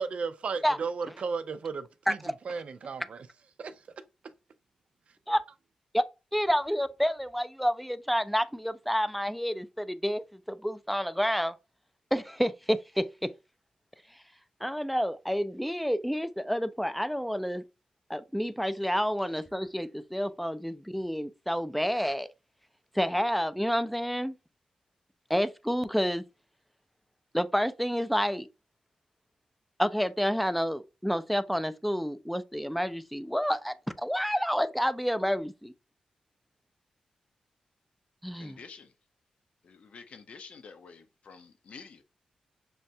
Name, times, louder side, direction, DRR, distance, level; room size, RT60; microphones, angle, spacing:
voice 1, 0.0-2.2 2.5-3.3 3.6-3.7, right 5 dB, 65° right, 0.4 m, -34 dB
voice 2, 6.3-11.5 12.1-13.3 14.6-17.6 18.1-22.3 22.9-24.3 25.3-26.2 27.3-28.5 29.8-35.7 38.2-38.6, equal, ahead, 0.4 m, -29 dB
voice 3, 38.3-38.9 39.6-42.0, left 5 dB, 70° left, 0.7 m, -49 dB
6.3 x 2.2 x 2.7 m
cardioid pair, 60°, 2 cm